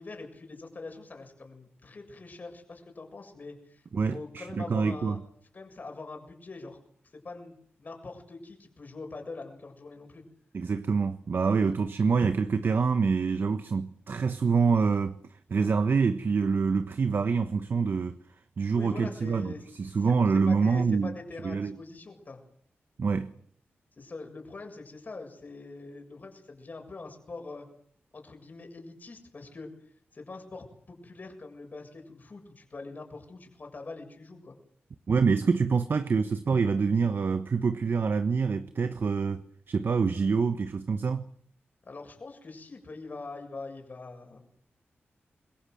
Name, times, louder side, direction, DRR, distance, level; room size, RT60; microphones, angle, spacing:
voice 1, 0.0-5.2 5.5-6.8 7.1-10.2 18.8-22.4 24.0-27.7 28.1-29.7 30.1-34.6 41.8-44.5, left 3 dB, 40° left, 7.2 m, -43 dB
voice 2, 3.9-5.2 10.5-15.2 15.5-18.2 18.6-21.2 21.4-21.7 23.0-23.3 35.1-41.3, right 5 dB, 55° right, 1.2 m, -26 dB
26.5 x 22.0 x 7.9 m
wide cardioid pair, 125°, 4 cm